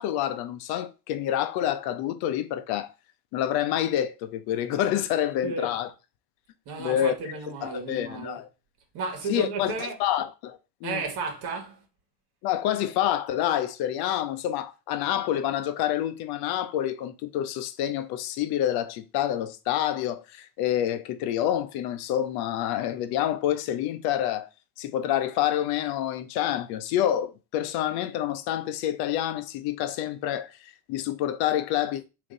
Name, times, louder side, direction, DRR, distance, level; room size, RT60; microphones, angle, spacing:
voice 1, 0.0-2.9 3.3-5.9 6.8-7.1 7.6-8.5 9.3-11.0 12.4-24.5 24.8-30.5 30.9-32.0, left 11 dB, 55° left, 0.7 m, -27 dB
voice 2, 6.6-8.4 8.9-10.0 10.8-11.8, right 4 dB, 55° right, 1.5 m, -33 dB
3.6 x 2.9 x 3.8 m
supercardioid pair, 95°, 48 cm